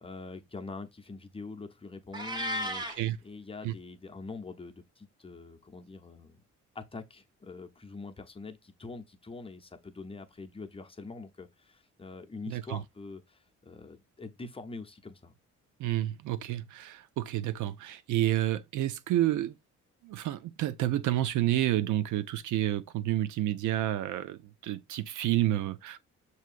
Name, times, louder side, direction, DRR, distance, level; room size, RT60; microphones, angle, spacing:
voice 1, 0.0-6.4 6.7-15.3, left 3 dB, 20° left, 0.7 m, -44 dB
Meow, 2.1-3.0, equal, 15° right, 0.9 m, -33 dB
voice 2, 12.5-12.8 15.8-19.5 20.0-26.0, right 14 dB, 80° right, 0.5 m, -29 dB
6.2 x 2.7 x 2.4 m
cardioid pair, 90°, 30 cm